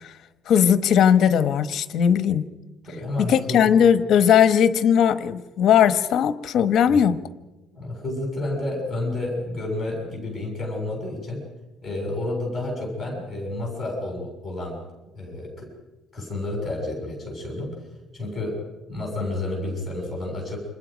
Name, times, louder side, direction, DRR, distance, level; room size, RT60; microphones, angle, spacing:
voice 1, 0.5-2.4 3.3-7.2, left 8 dB, 45° left, 1.1 m, -18 dB
voice 2, 2.8-3.7 6.9-7.0 7.7-11.4 11.8-14.8 15.2-15.7 16.1-17.7 18.1-18.6 18.9-20.6, left 2 dB, ahead, 7.3 m, -30 dB
29.0 x 26.5 x 5.2 m
cardioid pair, 175°, 0 cm